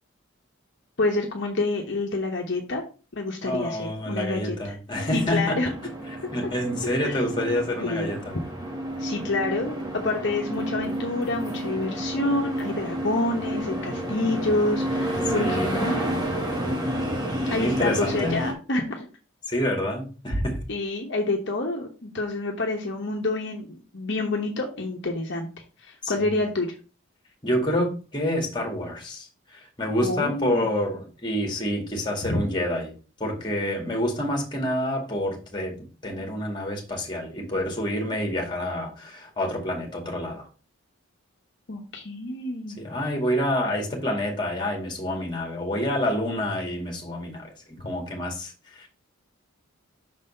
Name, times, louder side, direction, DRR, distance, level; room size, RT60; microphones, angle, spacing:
voice 1, 1.0-2.8 3.1-4.8 5.1-5.7 7.0-7.2 7.8-8.1 9.0-16.1 17.4-19.1 20.7-25.5 25.8-26.7 30.0-30.8 32.3-32.4 41.7-42.8, left 2 dB, 55° left, 1.0 m, -28 dB
voice 2, 3.4-5.6 6.3-8.3 15.3-15.7 17.5-18.5 19.5-20.6 26.0-26.1 27.4-32.9 33.2-40.5 42.8-48.9, left 1 dB, 20° left, 1.9 m, -28 dB
sound 1, 4.9-18.5, right 1 dB, 20° right, 1.3 m, -30 dB
6.0 x 4.1 x 5.4 m
head